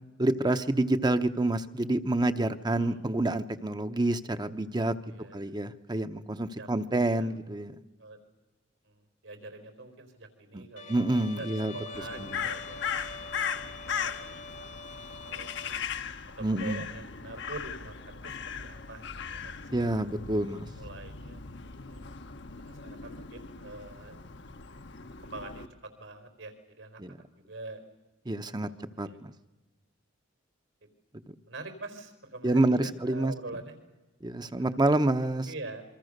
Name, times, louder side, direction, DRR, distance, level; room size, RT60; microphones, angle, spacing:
voice 1, 0.2-4.9 5.3-7.8 10.5-10.6 10.9-11.7 12.2-12.3 16.4-16.8 19.7-20.7 27.0-27.1 28.3-28.7 29.0-29.3 32.4-33.3 34.2-35.5, right 2 dB, 20° right, 9 dB, 0.9 m, -28 dB
voice 2, 2.7-3.0 5.1-5.6 6.6-6.7 7.0-7.4 8.0-8.2 8.8-10.9 11.3-14.9 15.2-15.8 16.4-19.5 19.8-20.1 20.8-22.1 22.6-24.2 25.2-27.8 28.5-29.2 31.5-33.8 34.6-34.8 35.5-35.8, right 2 dB, 85° right, 8 dB, 4.4 m, -45 dB
Bowed string instrument, 10.8-15.8, left 3 dB, 40° left, 1.1 m, -44 dB
Crow, 11.9-25.7, left 6 dB, 65° left, 1.2 m, -38 dB
26.5 x 23.5 x 6.6 m, 1.1 s
head